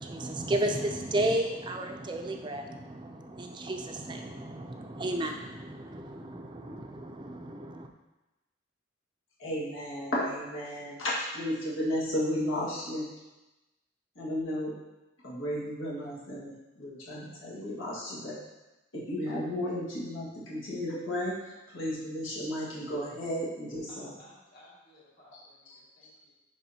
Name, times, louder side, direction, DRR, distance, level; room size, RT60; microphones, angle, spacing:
voice 1, 0.0-7.9, right 1 dB, 25° right, 3 dB, 0.5 m, -33 dB
voice 2, 9.4-13.0 14.1-14.7 15.2-18.3 18.9-24.1 25.3-25.8, equal, 80° left, -6 dB, 1.7 m, -34 dB
voice 3, 23.9-26.3, left 1 dB, 50° left, -6 dB, 1.9 m, -57 dB
10.5 x 3.7 x 2.8 m, 1.0 s
head